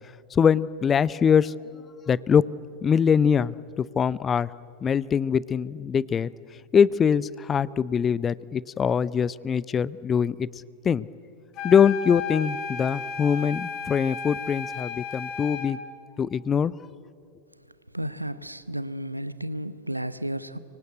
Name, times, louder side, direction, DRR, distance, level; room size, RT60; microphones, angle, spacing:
voice 1, 0.3-1.5 2.1-2.4 2.8-4.5 4.8-6.3 6.7-10.5 10.8-11.1 11.6-15.8 16.2-16.7, left 7 dB, 20° left, 21 dB, 0.5 m, -23 dB
sound 1, 11.5-15.8, left 5 dB, 35° left, 3.5 m, -34 dB
voice 2, 17.9-20.6, right 1 dB, 85° right, 14 dB, 0.9 m, -32 dB
24.5 x 24.5 x 8.1 m, 2.4 s
figure-of-eight pair, 90°, 0 cm